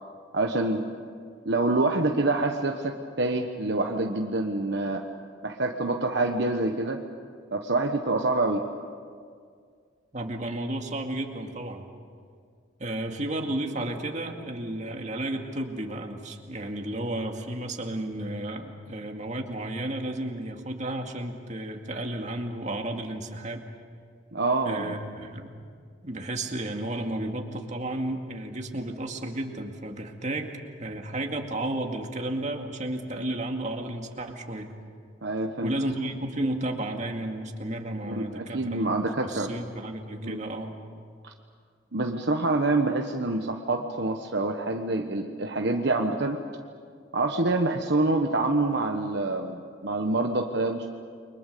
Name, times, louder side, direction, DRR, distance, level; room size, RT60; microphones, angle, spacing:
voice 1, 0.3-0.8 1.4-5.0 5.4-7.0 7.5-8.7 24.3-25.0 35.2-35.7 38.0-39.5 40.2-40.4 41.9-46.4 47.1-50.9, right 2 dB, 60° right, 3 dB, 1.2 m, -26 dB
voice 2, 10.1-11.9 12.8-23.6 24.7-25.5 26.0-34.7 35.6-40.7, right 1 dB, 40° right, 3 dB, 2.2 m, -33 dB
30.0 x 23.5 x 6.8 m, 2.1 s
head